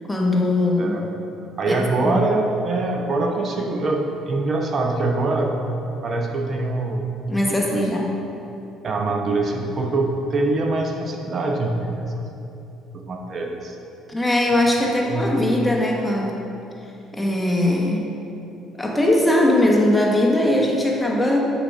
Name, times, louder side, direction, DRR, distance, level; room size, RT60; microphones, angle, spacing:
voice 1, 0.1-0.9 1.7-2.2 7.3-8.1 14.1-16.4 17.1-18.1 18.8-21.4, left 1 dB, 10° left, -1 dB, 1.1 m, -20 dB
voice 2, 1.6-5.6 6.0-7.1 7.5-7.9 8.8-12.0 12.9-13.8 15.0-15.4, right 2 dB, 45° right, 2 dB, 0.8 m, -24 dB
6.5 x 4.7 x 5.5 m, 2.8 s
supercardioid pair, 90°, 0 cm